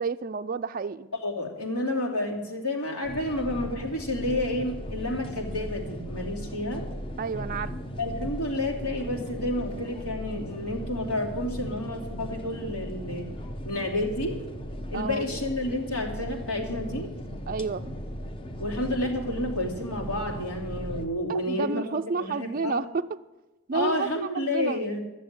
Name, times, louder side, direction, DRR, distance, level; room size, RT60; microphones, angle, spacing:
voice 1, 0.0-1.1 7.2-7.7 14.9-15.2 17.5-17.9 21.3-23.2 23.7-24.8, right 4 dB, 40° right, 9 dB, 0.4 m, -30 dB
voice 2, 1.2-6.8 8.0-13.3 13.6-14.3 14.9-17.1 18.6-21.8 22.2-22.8 23.7-25.0, left 1 dB, 85° left, -1 dB, 3.0 m, -30 dB
sound 1, 3.0-21.1, equal, 25° left, 0.8 m, -37 dB
13.0 x 7.5 x 9.5 m, 1.1 s
head